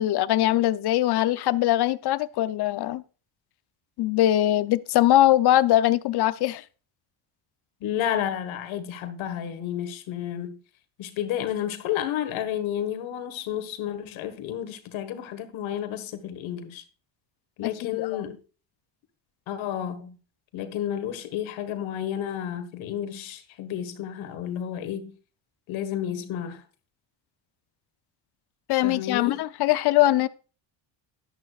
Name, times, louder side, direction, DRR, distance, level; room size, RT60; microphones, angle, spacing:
voice 1, 0.0-3.0 4.0-6.6 17.6-18.3 28.7-30.3, left 14 dB, 55° left, 0.7 m, -22 dB
voice 2, 7.8-10.6 11.0-16.8 17.6-18.4 19.5-20.2 20.5-25.1 25.7-26.6 28.8-29.4, left 10 dB, 70° left, 1.7 m, -31 dB
11.5 x 11.5 x 2.4 m
cardioid pair, 105°, 48 cm